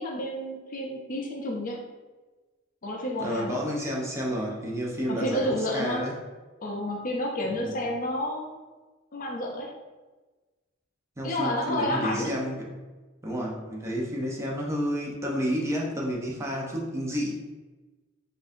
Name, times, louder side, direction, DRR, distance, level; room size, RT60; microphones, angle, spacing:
voice 1, 0.0-1.8 2.8-3.7 5.1-6.1 6.6-8.6 9.1-9.7 11.2-12.3, left 1 dB, 40° left, 0 dB, 0.5 m, -30 dB
voice 2, 3.2-6.1 7.5-7.8 11.2-12.7 13.2-17.4, equal, 15° right, -3 dB, 0.7 m, -30 dB
5.3 x 2.6 x 2.6 m, 1.2 s
head